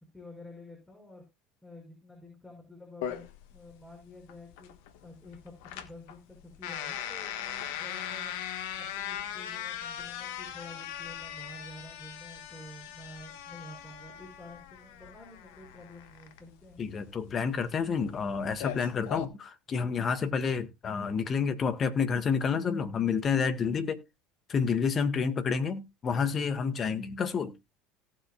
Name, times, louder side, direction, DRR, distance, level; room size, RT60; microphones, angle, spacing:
voice 1, 0.1-1.2 1.6-4.7 5.0-8.3 8.8-16.8, left 1 dB, 10° left, 6.0 m, -50 dB
sound 1, 3.0-19.2, left 10 dB, 65° left, 1.4 m, -40 dB
voice 2, 16.8-24.0 24.5-27.5, left 6 dB, 35° left, 1.8 m, -29 dB
18.0 x 7.8 x 2.4 m
hypercardioid pair, 70°, 0 cm